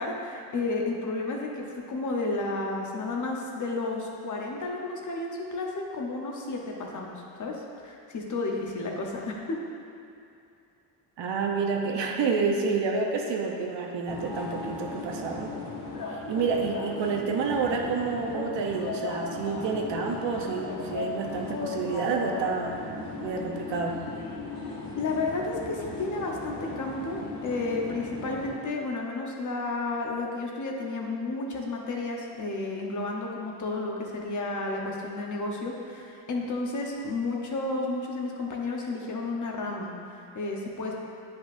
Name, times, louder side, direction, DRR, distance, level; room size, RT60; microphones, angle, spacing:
voice 1, 0.0-7.1 7.4-9.6 25.0-40.9, left 3 dB, 45° left, -1 dB, 1.0 m, -32 dB
voice 2, 11.2-15.5 16.1-22.8 23.2-24.0, right 4 dB, 85° right, 1 dB, 0.9 m, -29 dB
sound 1, 14.1-28.5, left 3 dB, 80° left, 1.4 m, -36 dB
10.0 x 5.4 x 2.6 m, 2.6 s
cardioid pair, 130°, 42 cm